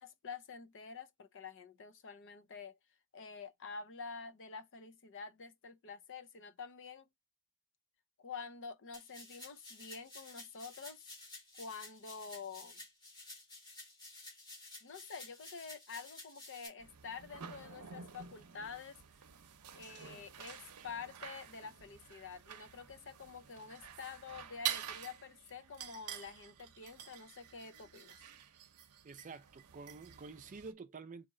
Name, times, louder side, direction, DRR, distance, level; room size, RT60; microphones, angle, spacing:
voice 1, 0.0-2.7 3.1-7.1 8.2-11.1 11.6-12.8 14.8-19.0 19.7-28.2, left 5 dB, 60° left, 0.6 m, -48 dB
sound 1, 8.9-16.7, left 2 dB, 20° left, 1.9 m, -52 dB
sound 2, 16.8-30.7, right 10 dB, 90° right, 0.7 m, -48 dB
voice 2, 29.0-31.3, right 4 dB, 35° right, 0.4 m, -49 dB
4.1 x 2.8 x 3.7 m
head